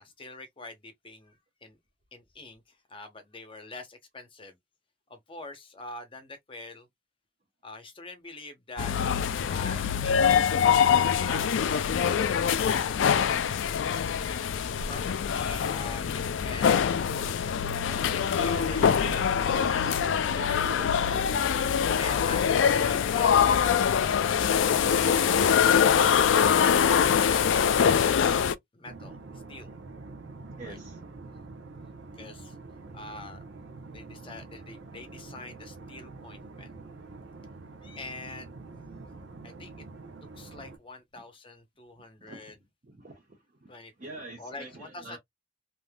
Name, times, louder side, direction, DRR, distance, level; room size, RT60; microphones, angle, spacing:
voice 1, 0.0-1.8 2.1-4.6 5.1-6.9 7.6-8.9 9.4-14.4 14.7-17.2 17.8-20.4 22.0-23.4 28.7-29.8 30.6-30.8 31.2-31.5 32.2-32.6 32.9-33.4 33.9-36.7 37.8-38.5 39.4-39.9 40.3-42.6 43.7-45.2, left 3 dB, 25° left, 0.8 m, -45 dB
sound 1, 8.8-28.5, left 7 dB, 75° left, 0.3 m, -24 dB
voice 2, 18.3-19.9 20.3-21.3 30.6-31.0 32.8-33.0 34.9-35.0 40.4-40.6 42.2-42.6 42.9-43.7 44.0-45.2, right 2 dB, 40° right, 0.9 m, -44 dB
sound 2, 28.8-40.8, right 3 dB, 70° right, 0.7 m, -46 dB
3.3 x 2.6 x 2.2 m
head